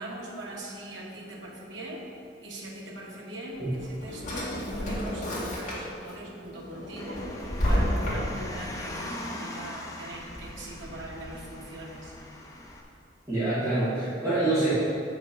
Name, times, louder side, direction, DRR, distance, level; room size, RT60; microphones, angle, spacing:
voice 1, 0.0-2.1 2.4-12.2, right 1 dB, 85° right, -2 dB, 1.4 m, -41 dB
Drawer open or close, 3.6-6.1 6.5-8.6, equal, 40° left, 2.0 m, -30 dB
Car, 7.0-12.8, left 1 dB, 15° left, 0.7 m, -41 dB
voice 2, 13.3-14.7, right 2 dB, 15° right, -13 dB, 2.1 m, -26 dB
7.4 x 5.4 x 5.4 m, 2.5 s
head